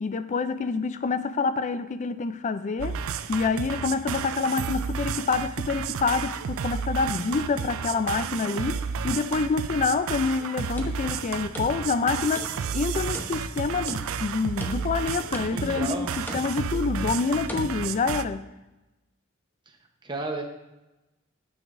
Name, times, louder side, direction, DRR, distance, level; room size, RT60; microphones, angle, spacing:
voice 1, 0.0-3.0 3.3-18.5, left 4 dB, 35° left, 12 dB, 0.4 m, -27 dB
sound 1, 2.8-18.2, right 6 dB, 65° right, 0.4 m, -32 dB
sound 2, 10.5-12.1 12.4-12.8 13.1-14.3 14.6-15.1 15.3-15.8 16.3-16.8 17.5-17.7, left 1 dB, 10° left, 0.8 m, -39 dB
voice 2, 15.4-16.1 20.0-20.4, right 2 dB, 20° right, 2 dB, 0.9 m, -32 dB
9.3 x 7.2 x 2.6 m, 1.0 s
head